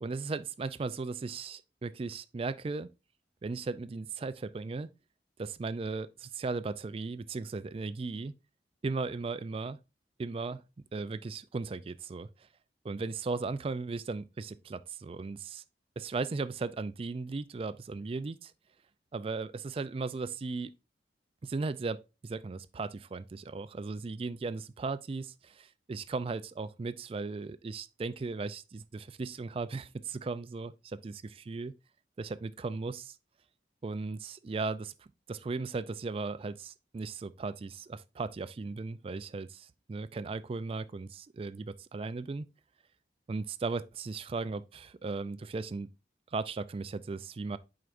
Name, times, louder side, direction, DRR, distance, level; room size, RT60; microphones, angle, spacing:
voice 1, 0.0-2.9 3.4-4.9 5.4-8.3 8.8-9.8 10.2-10.6 10.9-12.3 12.8-15.6 16.0-18.5 19.1-20.7 21.4-31.7 32.2-33.2 33.8-34.9 35.3-42.5 43.3-45.9 46.3-47.6, right 3 dB, 30° right, 0.3 m, -37 dB
7.7 x 4.8 x 2.5 m
head